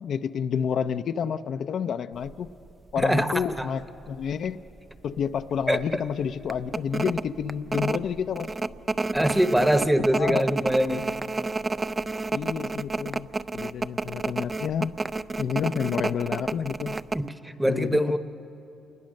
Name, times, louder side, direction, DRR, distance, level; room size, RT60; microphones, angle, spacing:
voice 1, 0.0-2.5 2.9-4.6 5.0-8.5 10.1-10.5 12.3-13.3 13.5-14.9 15.4-17.0 17.7-18.2, left 7 dB, 65° left, 9 dB, 0.5 m, -29 dB
sound 1, 2.2-2.5 3.0-3.1 3.4-4.3 4.7-4.8 5.2-5.4 5.8-5.9 6.5-17.3, right 3 dB, 25° right, 0.4 m, -30 dB
voice 2, 3.0-3.7 5.7-6.0 9.1-11.1 17.1-18.2, equal, 5° right, 10 dB, 1.0 m, -24 dB
27.5 x 20.5 x 6.5 m, 2.8 s
cardioid pair, 90°, 0 cm